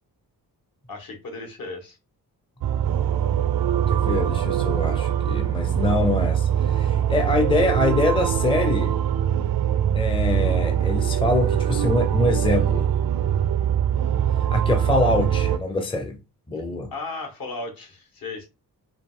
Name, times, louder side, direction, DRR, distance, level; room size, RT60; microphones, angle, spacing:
voice 1, 0.9-2.0 16.9-18.5, left 3 dB, 60° left, 1.6 m, -35 dB
sound 1, 2.6-15.6, right 9 dB, 65° right, 0.5 m, -22 dB
voice 2, 3.9-8.9 9.9-12.9 14.5-16.2 16.5-16.9, left 2 dB, 15° left, 0.6 m, -24 dB
5.0 x 2.6 x 3.7 m
cardioid pair, 110°, 38 cm